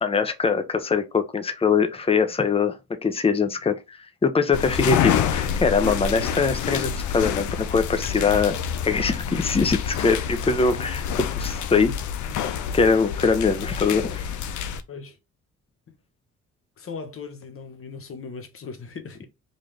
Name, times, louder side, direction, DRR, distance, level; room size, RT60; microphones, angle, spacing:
voice 1, 0.0-8.6 8.8-11.1 11.3-11.9 12.7-14.4, left 5 dB, 20° left, 0.7 m, -22 dB
sound 1, 4.5-14.8, left 8 dB, 80° left, 0.5 m, -27 dB
voice 2, 16.8-19.3, left 5 dB, 45° left, 1.0 m, -38 dB
3.9 x 2.5 x 3.4 m
cardioid pair, 75°, 29 cm